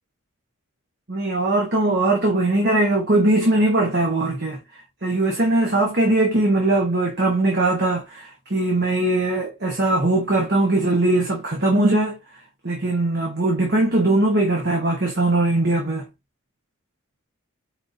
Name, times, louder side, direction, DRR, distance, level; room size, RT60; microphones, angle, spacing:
voice 1, 1.1-4.6 5.0-12.2 12.6-16.1, right 2 dB, 50° right, 1.1 m, -20 dB
4.7 x 4.0 x 2.6 m
head